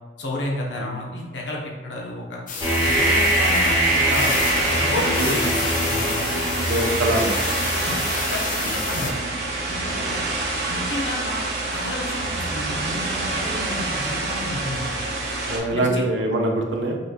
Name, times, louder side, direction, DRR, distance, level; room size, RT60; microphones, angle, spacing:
voice 1, 0.2-2.4 2.8-4.3 4.7-6.2 7.8-7.9 8.3-9.2 9.7-10.2 10.7-11.4 11.7-14.9 15.7-16.0, left 1 dB, 85° left, -2 dB, 0.9 m, -31 dB
sound 1, 2.5-9.1, left 5 dB, 45° left, 0.5 m, -31 dB
sound 2, 2.6-14.4, right 1 dB, 25° left, 1.1 m, -26 dB
sound 3, 2.8-15.6, right 2 dB, 65° right, 0.9 m, -27 dB
voice 2, 6.3-7.4 8.6-8.8 15.5-17.0, right 1 dB, 85° right, 1 dB, 0.6 m, -24 dB
5.2 x 3.1 x 2.2 m, 1.3 s
head